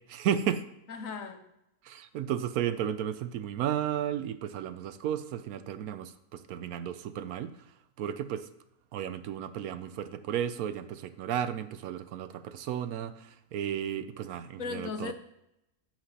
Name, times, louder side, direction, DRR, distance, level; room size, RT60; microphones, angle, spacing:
voice 1, 0.1-0.6 1.8-7.5 8.0-8.5 8.9-15.1, right 9 dB, 75° right, 12 dB, 1.0 m, -33 dB
voice 2, 0.9-1.5 14.6-15.1, left 5 dB, 65° left, 7 dB, 1.2 m, -37 dB
15.0 x 5.9 x 2.8 m, 0.84 s
omnidirectional pair, 1.6 m